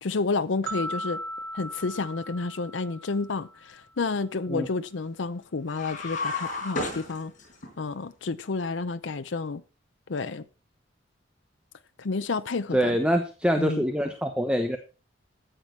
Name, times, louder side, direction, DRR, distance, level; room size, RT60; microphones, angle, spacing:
voice 1, 0.0-1.2 1.5-7.3 7.8-9.6 10.1-10.4 12.0-13.0 13.6-13.8, left 4 dB, 75° left, 0.6 m, -30 dB
sound 1, 0.7-3.8, right 1 dB, 90° right, 3.5 m, -37 dB
sound 2, 5.7-7.7, left 3 dB, 45° left, 4.8 m, -32 dB
voice 2, 12.7-14.8, equal, 5° right, 1.1 m, -25 dB
13.5 x 9.0 x 4.6 m
head